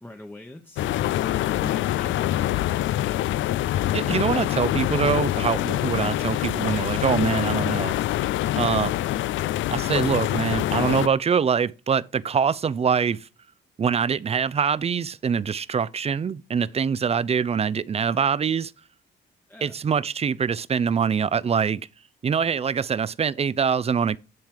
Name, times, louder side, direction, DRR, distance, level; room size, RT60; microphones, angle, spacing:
voice 1, 0.0-2.6 19.5-19.8, left 1 dB, 10° left, 1.0 m, -42 dB
sound 1, 0.8-11.1, left 14 dB, 75° left, 0.4 m, -25 dB
voice 2, 3.9-7.9 8.6-8.9 9.7-13.3 13.8-18.7 19.6-21.8 22.2-24.2, right 6 dB, 30° right, 0.5 m, -24 dB
10.5 x 3.7 x 4.7 m
cardioid pair, 90°, 20 cm